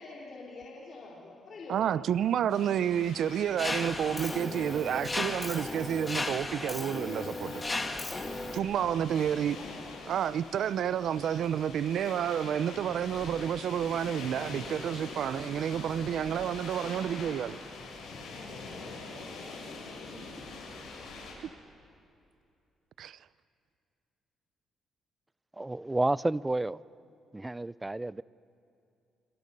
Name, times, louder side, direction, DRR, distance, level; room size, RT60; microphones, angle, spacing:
voice 1, 0.0-1.9 9.6-10.0 10.4-10.5, left 3 dB, 50° left, 4.0 m, -46 dB
voice 2, 1.7-7.6 8.5-9.6 10.1-17.6 23.0-23.2, right 9 dB, 70° right, 0.6 m, -30 dB
sound 1, 2.5-21.3, left 3 dB, 75° left, 7.5 m, -44 dB
Mechanisms, 3.6-8.6, left 2 dB, 20° left, 1.9 m, -35 dB
voice 3, 25.6-26.8 27.3-28.2, right 2 dB, 15° right, 0.4 m, -30 dB
27.0 x 26.0 x 5.5 m
cardioid pair, 90°, 0 cm